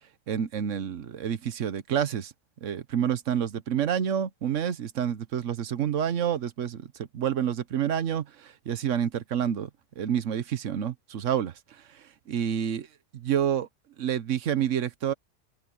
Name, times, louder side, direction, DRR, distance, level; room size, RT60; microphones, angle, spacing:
voice 1, 0.3-2.3 2.6-6.9 7.1-9.7 10.0-11.5 12.3-12.9 13.1-13.7 14.0-15.1, right 9 dB, 90° right, 1.3 m, -28 dB
open air
omnidirectional pair, 1.3 m